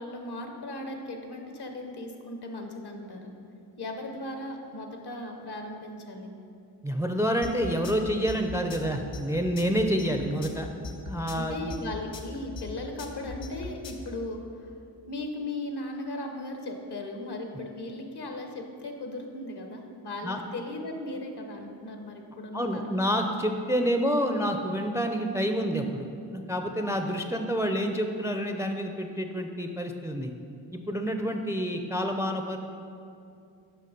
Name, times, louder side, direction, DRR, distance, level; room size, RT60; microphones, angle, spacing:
voice 1, 0.0-3.3 3.8-6.3 11.3-14.7 15.1-23.1, left 2 dB, 60° left, 4 dB, 1.2 m, -37 dB
voice 2, 6.8-11.7 20.2-20.4 22.5-30.3 30.7-32.6, equal, 5° right, 5 dB, 0.5 m, -28 dB
sound 1, 7.4-14.1, left 3 dB, 85° left, 1.0 m, -39 dB
6.7 x 5.8 x 5.2 m, 2.6 s
cardioid pair, 65°, 44 cm